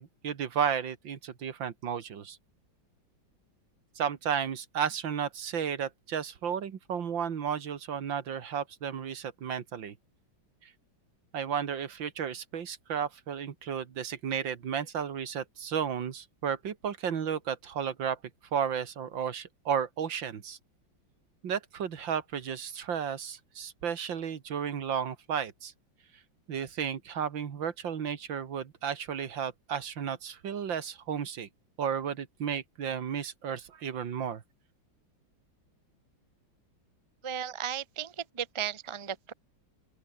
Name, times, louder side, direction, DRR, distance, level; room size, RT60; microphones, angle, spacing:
voice 1, 0.0-2.4 4.0-10.0 10.6-10.7 11.3-18.2 18.5-20.6 21.4-25.7 26.5-31.5 31.8-34.4, right 7 dB, 75° right, 2.4 m, -33 dB
voice 2, 37.2-39.3, right 9 dB, 25° right, 0.7 m, -35 dB
open air
omnidirectional pair, 2.1 m